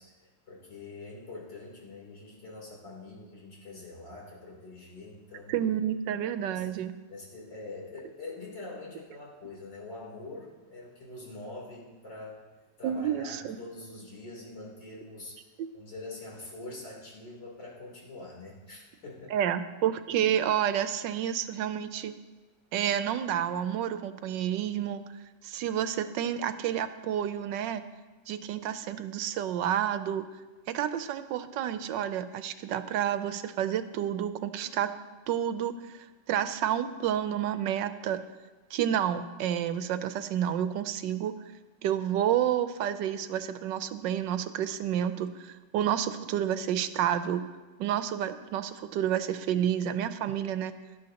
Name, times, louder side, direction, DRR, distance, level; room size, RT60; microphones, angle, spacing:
voice 1, 0.0-5.6 6.5-6.7 7.1-12.4 12.8-19.4, left 2 dB, 85° left, -4 dB, 4.1 m, -44 dB
voice 2, 5.5-6.9 12.8-13.6 19.3-22.1 22.7-25.0 25.4-27.8 28.3-30.3 30.7-34.9 35.3-38.2 38.7-41.3 41.8-47.5 47.8-50.7, right 10 dB, 85° right, 11 dB, 1.3 m, -30 dB
17.5 x 12.0 x 2.9 m, 1.2 s
omnidirectional pair, 1.9 m